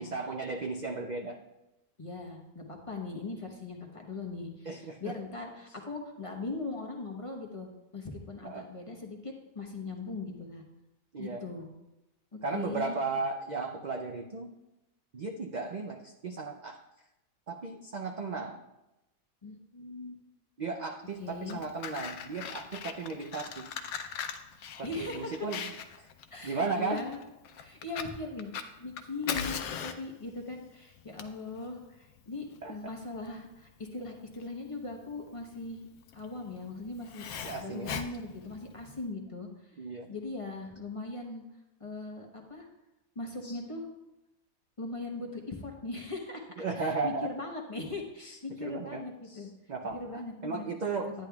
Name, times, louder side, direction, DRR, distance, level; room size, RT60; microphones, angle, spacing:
voice 1, 0.0-1.4 4.7-5.1 8.4-8.7 11.1-11.4 12.4-14.5 15.1-16.8 17.5-18.6 20.6-23.7 24.8-25.7 26.0-26.1 26.4-27.1 29.2-29.4 32.6-32.8 37.4-38.0 39.8-40.1 43.4-43.6 46.6-47.3 48.3-49.0 49.3-51.1, right 4 dB, 60° right, 3 dB, 0.4 m, -35 dB
voice 2, 2.0-10.6 11.2-11.7 12.3-13.0 19.4-20.2 21.2-21.6 24.8-25.5 26.3-27.2 27.6-28.5 28.8-35.9 36.1-37.2 37.6-39.7 40.1-41.4 41.8-42.7 43.1-43.9 44.8-49.5 49.8-50.7 51.0-51.3, left 3 dB, 25° left, 1 dB, 1.0 m, -40 dB
Fire, 21.3-39.0, left 7 dB, 90° left, 1.1 m, -41 dB
10.5 x 10.0 x 2.3 m, 0.94 s
omnidirectional pair, 1.5 m